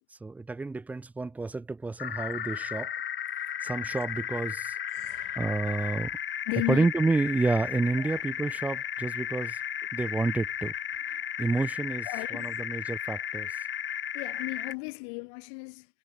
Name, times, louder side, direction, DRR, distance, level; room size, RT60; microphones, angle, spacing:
voice 1, 0.2-2.9 3.6-4.8 5.3-6.1 6.7-9.6 9.9-10.7 11.4-12.1 12.3-13.5, right 3 dB, 5° right, 1.7 m, -29 dB
sound 1, 2.0-14.7, left 10 dB, 70° left, 4.0 m, -34 dB
voice 2, 4.9-5.5 6.5-6.9 8.0-8.2 12.1-12.5 14.1-15.9, left 37 dB, 35° left, 4.0 m, -35 dB
hypercardioid pair, 155°, 30 cm